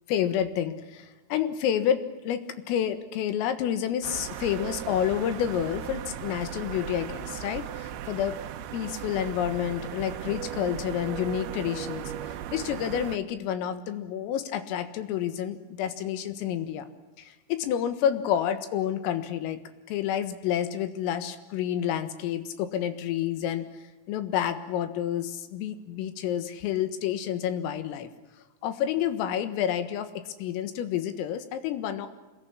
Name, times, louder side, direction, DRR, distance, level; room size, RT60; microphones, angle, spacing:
voice 1, 0.1-8.4 8.7-12.0 12.5-16.9 17.2-19.6 19.9-23.7 24.1-28.1 28.6-32.1, left 10 dB, 85° left, 10 dB, 4.2 m, -29 dB
sound 1, 4.0-13.2, right 11 dB, 85° right, 2.2 m, -37 dB
27.0 x 21.0 x 9.9 m, 1.1 s
omnidirectional pair, 6.0 m